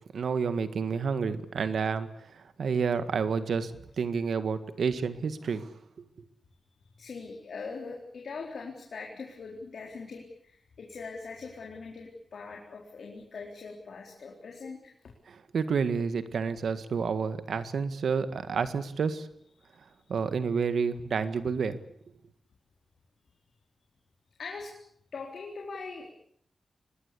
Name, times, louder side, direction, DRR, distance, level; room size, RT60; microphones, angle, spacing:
voice 1, 0.1-6.1 15.3-19.3 20.1-21.8, right 5 dB, 80° right, 11 dB, 1.8 m, -30 dB
voice 2, 6.8-14.9 19.6-19.7 24.4-24.7 25.1-26.1, left 4 dB, 70° left, 0 dB, 4.2 m, -42 dB
25.0 x 20.0 x 8.5 m, 0.69 s
wide cardioid pair, 110°, 0 cm